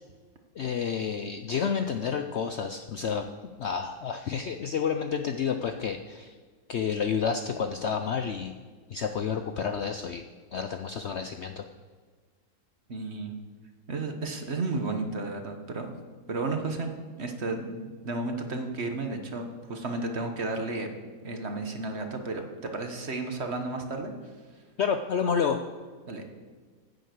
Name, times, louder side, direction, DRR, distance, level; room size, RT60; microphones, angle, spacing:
voice 1, 0.6-3.3 3.6-6.3 6.7-8.5 8.9-10.2 10.5-11.6 24.8-25.6, left 6 dB, 60° left, 6 dB, 0.7 m, -30 dB
voice 2, 12.9-13.3 13.9-15.9 16.3-16.9 17.2-20.9 21.2-24.1 26.0-26.3, right 3 dB, 45° right, 5 dB, 1.4 m, -33 dB
10.5 x 7.7 x 7.8 m, 1.5 s
omnidirectional pair, 1.7 m